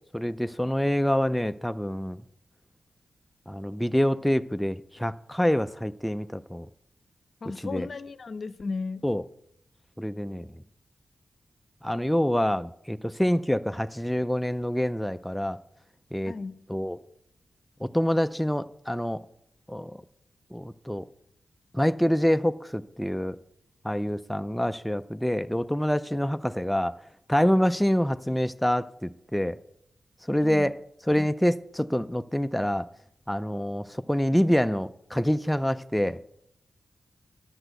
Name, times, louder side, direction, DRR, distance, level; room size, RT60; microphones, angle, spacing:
voice 1, 0.1-2.2 3.5-6.7 7.6-7.9 9.0-9.2 10.0-10.5 11.8-15.6 16.1-16.3 16.7-17.0 17.8-19.2 19.7-20.0 20.5-21.1 21.7-23.4 23.8-26.9 27.3-29.6 30.3-30.8 31.1-32.9 33.3-36.2, equal, 5° left, 0.4 m, -26 dB
voice 2, 7.4-9.0 16.3-16.6 30.4-30.7, left 4 dB, 55° left, 0.6 m, -35 dB
11.0 x 6.1 x 7.9 m
cardioid pair, 80°, 0 cm